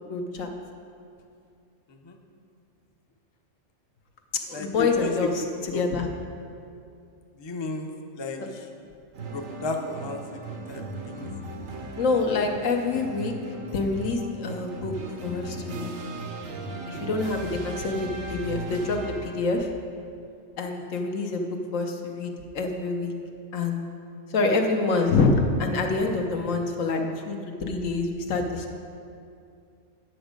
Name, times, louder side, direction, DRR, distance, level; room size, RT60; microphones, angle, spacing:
voice 1, 0.1-0.5 4.5-6.1 8.4-8.5 12.0-13.3 13.7-14.9 15.2-15.9 16.9-19.7 20.6-21.4 21.7-23.1 23.5-23.9 24.3-28.8, left 3 dB, 80° left, 3 dB, 1.3 m, -26 dB
voice 2, 4.5-5.3 5.7-5.8 7.4-7.9 8.2-8.4 9.3-10.2 10.7-11.3, left 3 dB, 30° left, 3 dB, 0.6 m, -32 dB
sound 1, 9.1-19.6, right 2 dB, 80° right, 1.3 m, -37 dB
9.8 x 7.1 x 5.1 m, 2.4 s
omnidirectional pair, 1.3 m